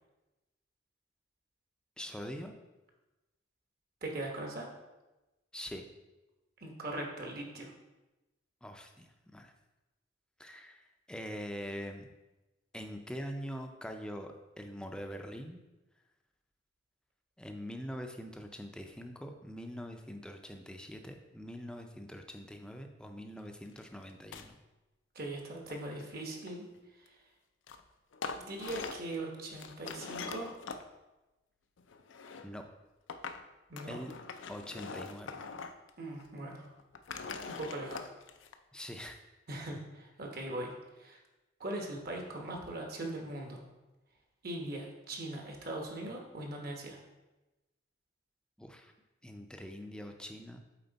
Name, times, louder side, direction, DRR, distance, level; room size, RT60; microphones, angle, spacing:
voice 1, 2.0-2.5 5.5-5.8 8.6-9.5 10.4-12.1 12.7-15.6 17.4-24.6 32.4-32.6 33.9-34.1 34.5-35.4 38.7-39.2 48.6-48.9 49.2-50.6, equal, 5° left, 4 dB, 0.5 m, -43 dB
voice 2, 4.0-4.7 6.6-7.7 25.1-26.6 26.9-27.2 28.3-30.6 33.7-34.0 36.0-36.7 37.5-38.1 39.5-41.2 41.6-43.6 44.4-47.0, right 1 dB, 50° right, 1 dB, 1.2 m, -40 dB
sound 1, 23.8-23.9 24.1-24.5 25.5-26.8 27.7-27.8 28.1-29.1 29.5-30.8 31.8-32.5 33.1-33.4 33.8-35.9 36.2-36.3 36.8-38.5, left 5 dB, 80° left, 0.5 m, -43 dB
7.8 x 4.4 x 4.0 m, 1.1 s
head